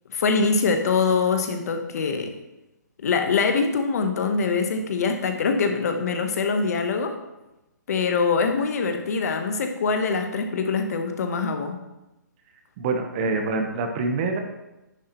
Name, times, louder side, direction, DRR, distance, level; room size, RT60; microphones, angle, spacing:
voice 1, 0.1-2.3 3.0-7.2 7.9-11.8, left 4 dB, 55° left, 7 dB, 1.0 m, -23 dB
voice 2, 12.8-14.4, right 3 dB, 30° right, 5 dB, 0.9 m, -25 dB
9.8 x 6.6 x 3.0 m, 0.97 s
hypercardioid pair, 150°, 10 cm